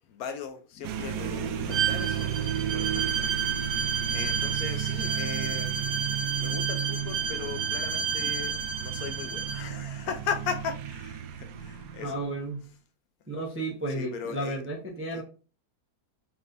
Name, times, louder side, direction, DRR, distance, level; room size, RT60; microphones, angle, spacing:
voice 1, 0.1-3.8 4.1-6.0 6.3-12.1 13.9-14.6 15.1-15.2, left 7 dB, 70° left, 1.0 m, -38 dB
sound 1, 0.8-12.6, right 9 dB, 80° right, 1.1 m, -33 dB
Bowed string instrument, 1.7-9.6, right 7 dB, 50° right, 1.1 m, -31 dB
voice 2, 12.0-12.6 13.3-15.2, right 1 dB, 15° right, 0.5 m, -33 dB
4.3 x 3.4 x 2.5 m
omnidirectional pair, 1.7 m